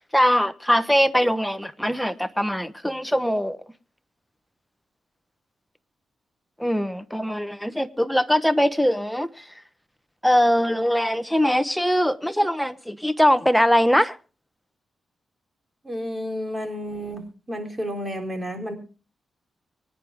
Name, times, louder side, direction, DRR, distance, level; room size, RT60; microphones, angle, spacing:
voice 1, 0.0-3.6 6.6-9.4 10.2-14.2, equal, ahead, 1.1 m, -21 dB
voice 2, 15.8-17.2 17.5-18.7, equal, 25° right, 3.7 m, -31 dB
24.0 x 9.7 x 3.5 m
cardioid pair, 80°, 0 cm